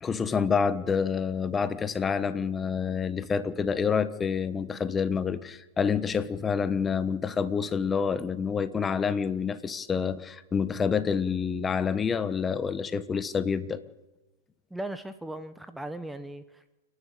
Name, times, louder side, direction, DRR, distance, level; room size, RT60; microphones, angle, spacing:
voice 1, 0.0-13.8, left 6 dB, 20° left, 13 dB, 1.3 m, -28 dB
voice 2, 14.7-16.7, right 1 dB, 5° right, 11 dB, 1.0 m, -38 dB
29.0 x 11.5 x 8.6 m, 1.0 s
hypercardioid pair, 125°, 0 cm